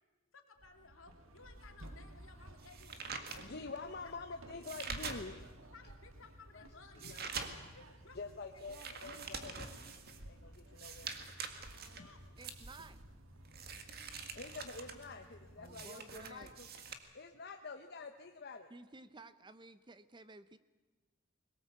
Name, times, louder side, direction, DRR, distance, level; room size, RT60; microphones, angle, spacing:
voice 1, 0.3-3.7 4.8-5.2 5.7-7.3 7.7-8.2 8.5-9.0 12.0-12.2, left 4 dB, 70° left, 4 dB, 2.9 m, -59 dB
sound 1, 0.6-15.9, right 1 dB, 75° right, 1.8 m, -56 dB
sound 2, 1.8-5.6 6.1-16.9, right 5 dB, 50° right, 1.8 m, -46 dB
voice 2, 3.4-5.4 6.5-6.7 6.9-7.6 8.1-11.2 12.0-12.1 14.3-16.7 17.1-18.7, left 3 dB, 50° left, 4 dB, 1.0 m, -47 dB
voice 3, 12.4-13.0 15.6-16.6 18.7-20.6, right 2 dB, 20° right, 13 dB, 0.6 m, -54 dB
21.5 x 19.0 x 8.3 m, 1.3 s
head